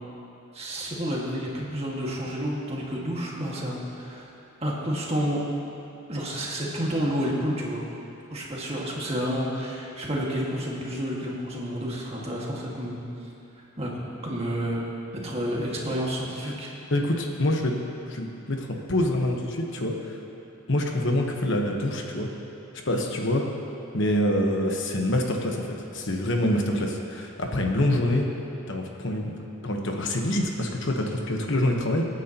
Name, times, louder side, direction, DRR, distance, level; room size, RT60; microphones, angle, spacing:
voice 1, 0.5-4.3 4.6-5.4 6.1-7.8 8.3-13.0 13.8-13.9 14.2-14.8 15.2-16.7, equal, 30° right, -3 dB, 1.9 m, -30 dB
voice 2, 16.9-17.8 18.1-20.2 20.7-22.3 22.8-23.5 23.9-28.3 28.7-29.3 29.6-32.0, left 1 dB, 60° left, 1 dB, 1.2 m, -26 dB
24.0 x 9.3 x 3.0 m, 2.8 s
head